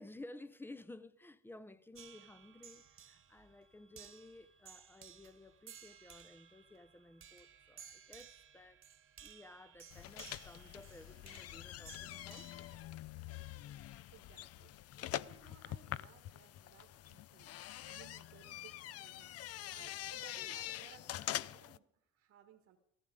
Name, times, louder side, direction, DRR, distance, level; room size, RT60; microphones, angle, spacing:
voice 1, 0.0-8.8 9.2-12.5, left 2 dB, 5° left, 0.7 m, -55 dB
sound 1, 1.9-12.8, right 8 dB, 45° right, 1.5 m, -58 dB
sound 2, 3.2-8.6, equal, 85° left, 7.8 m, -76 dB
sound 3, 9.9-21.8, left 13 dB, 55° left, 0.5 m, -45 dB
voice 2, 14.1-17.5 17.8-22.8, right 8 dB, 60° right, 1.6 m, -61 dB
15.0 x 14.5 x 5.2 m
cardioid pair, 105°, 30 cm